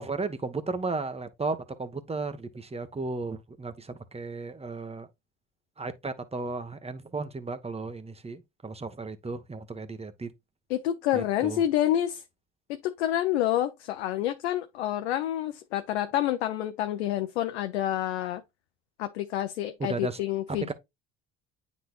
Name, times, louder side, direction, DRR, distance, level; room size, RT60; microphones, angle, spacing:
voice 1, 0.0-5.1 5.8-10.3 11.1-11.6 19.8-20.2 20.7-20.8, right 3 dB, 20° right, 1.3 m, -34 dB
voice 2, 10.7-12.2 12.8-18.4 19.0-20.7, left 12 dB, 85° left, 0.7 m, -28 dB
9.2 x 4.2 x 2.4 m
hypercardioid pair, 65°, 32 cm